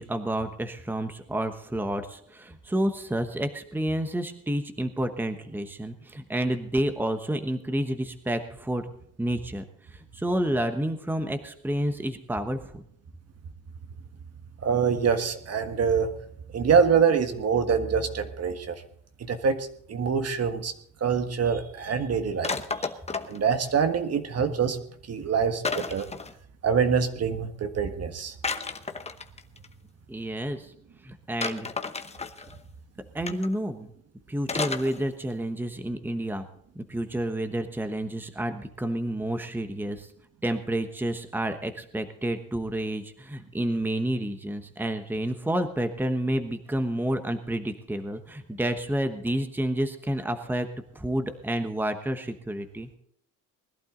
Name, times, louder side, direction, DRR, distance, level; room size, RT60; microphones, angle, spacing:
voice 1, 0.0-8.9 9.2-9.6 9.9-12.8 30.1-30.7 31.0-31.7 32.4-32.5 33.1-33.9 34.3-36.4 36.7-40.1 40.4-50.7 50.9-52.9, right 1 dB, 5° right, 8 dB, 1.1 m, -29 dB
voice 2, 14.6-16.1 16.5-18.7 19.2-20.7 21.0-22.6 23.3-24.8 25.1-26.1 26.6-28.3, right 6 dB, 45° right, 7 dB, 1.6 m, -25 dB
sound 1, 22.4-23.4 25.6-26.3 28.4-29.7 31.4-32.6 33.3-33.5 34.5-35.0 35.3-35.4, left 4 dB, 20° left, 1.0 m, -32 dB
20.5 x 11.5 x 3.9 m, 0.65 s
cardioid pair, 105°, 33 cm